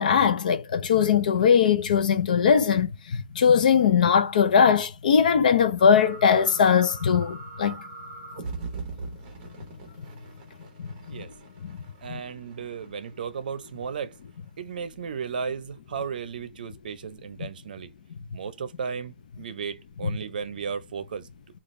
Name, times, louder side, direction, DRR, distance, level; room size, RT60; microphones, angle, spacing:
voice 1, 0.0-7.8 11.1-11.2 11.6-11.8 12.1-12.2 17.4-17.5 20.0-20.1, left 7 dB, 55° left, 0.6 m, -20 dB
sound 1, 5.8-14.2, right 4 dB, 25° right, 0.9 m, -42 dB
voice 2, 12.0-14.2 14.6-17.9 18.3-21.3, right 6 dB, 65° right, 0.6 m, -35 dB
3.8 x 2.4 x 3.1 m
hypercardioid pair, 175°, 5 cm